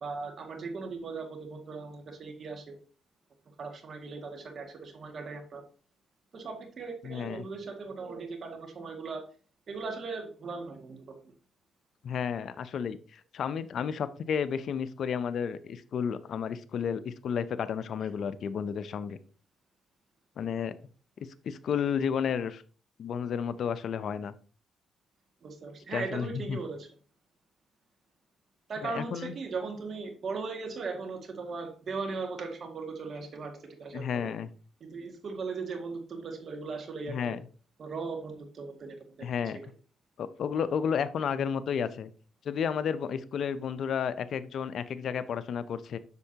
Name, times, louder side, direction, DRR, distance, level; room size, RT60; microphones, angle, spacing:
voice 1, 0.0-2.8 3.6-5.6 6.3-9.3 9.7-11.2 25.4-26.9 28.7-34.3 34.9-37.4 37.8-39.3, right 4 dB, 50° right, 4 dB, 2.0 m, -38 dB
voice 2, 7.0-7.4 12.0-19.2 20.4-20.7 21.4-22.6 23.0-24.3 25.9-26.6 28.8-29.3 33.9-34.5 37.1-37.4 39.2-39.6 40.2-42.1 42.4-46.0, left 7 dB, 60° left, 14 dB, 0.6 m, -32 dB
8.1 x 6.5 x 2.8 m, 0.39 s
cardioid pair, 90°, 0 cm